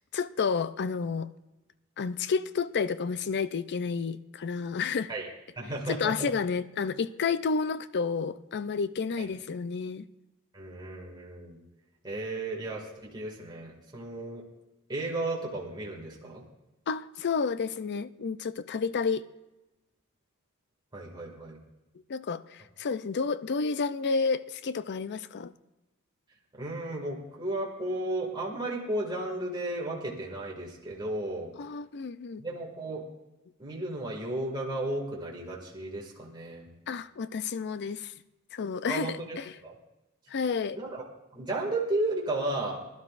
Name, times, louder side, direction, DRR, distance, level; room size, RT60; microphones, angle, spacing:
voice 1, 0.1-1.3 2.0-5.1 5.9-10.1 16.9-19.3 22.1-25.5 31.6-32.4 36.9-38.1 38.5-39.5 40.3-40.8, left 5 dB, 50° left, 0.5 m, -30 dB
voice 2, 5.6-6.3 10.5-11.6 12.0-12.9 13.1-14.4 14.9-16.4 20.9-21.6 26.5-31.5 32.4-33.0 33.6-36.6 38.9-39.4 39.6-39.7 40.7-41.0 41.3-42.8, right 2 dB, 20° right, 2.1 m, -34 dB
20.5 x 11.5 x 2.5 m
head